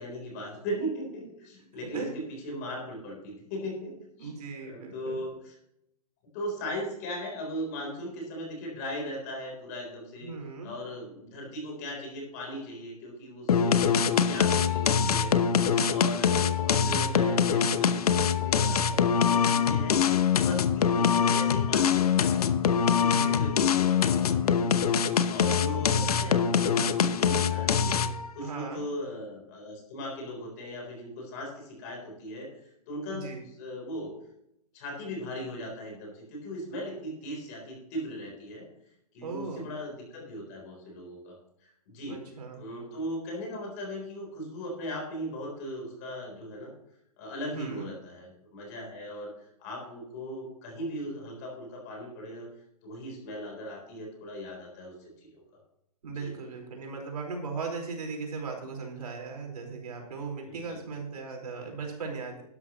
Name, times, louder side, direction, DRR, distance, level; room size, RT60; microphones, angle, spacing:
voice 1, 0.0-5.6 6.3-10.3 10.6-15.3 15.8-20.0 20.3-22.5 22.8-24.9 25.3-28.0 28.3-32.5 32.9-33.3 33.6-34.1 34.7-38.7 39.1-41.3 41.6-42.2 42.5-46.7 47.2-49.3 49.6-52.5 52.8-55.4 56.2-56.3 60.4-60.8, equal, 25° left, 0 dB, 3.7 m, -38 dB
voice 2, 4.2-5.2 10.2-10.7 23.0-23.4 25.6-26.3 28.4-28.8 33.1-33.4 39.2-39.7 42.0-42.6 47.5-47.9 56.0-62.4, right 4 dB, 80° right, 1 dB, 4.6 m, -38 dB
sound 1, 13.5-28.3, left 7 dB, 75° left, 1.0 m, -24 dB
12.0 x 11.5 x 3.0 m, 0.80 s
hypercardioid pair, 180°, 20 cm